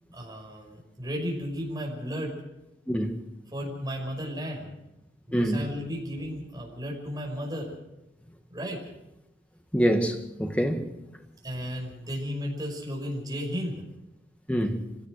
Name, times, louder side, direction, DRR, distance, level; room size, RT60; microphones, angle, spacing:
voice 1, 0.1-2.4 3.5-4.7 5.3-7.7 8.5-8.8 11.4-13.8, equal, 20° right, 5.7 m, -34 dB
voice 2, 9.7-10.9 14.5-14.8, equal, 5° left, 1.8 m, -25 dB
24.0 x 17.0 x 6.5 m
head